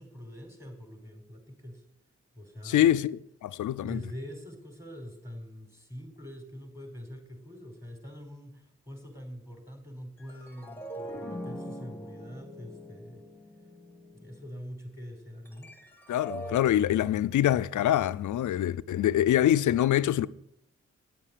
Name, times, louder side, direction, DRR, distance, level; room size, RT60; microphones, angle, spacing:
voice 1, 0.0-1.8 2.3-2.9 3.8-13.2 14.1-15.7, equal, 10° right, 4.4 m, -44 dB
voice 2, 2.6-4.0 16.1-20.3, left 12 dB, 85° left, 0.5 m, -25 dB
sound 1, 10.2-14.5 15.5-16.6, equal, 5° left, 1.6 m, -42 dB
9.8 x 7.5 x 8.5 m
cardioid pair, 55°, 29 cm